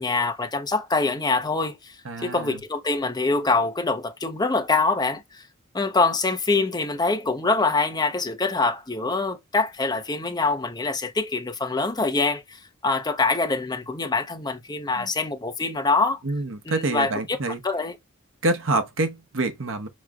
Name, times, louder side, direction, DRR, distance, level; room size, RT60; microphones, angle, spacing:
voice 1, 0.0-5.4 5.7-16.2 16.7-17.4 17.6-17.9, left 3 dB, 20° left, 0.8 m, -24 dB
voice 2, 2.0-2.6 14.9-15.1 16.2-17.6 18.4-19.9, right 2 dB, 65° right, 1.0 m, -27 dB
6.3 x 3.0 x 2.4 m
head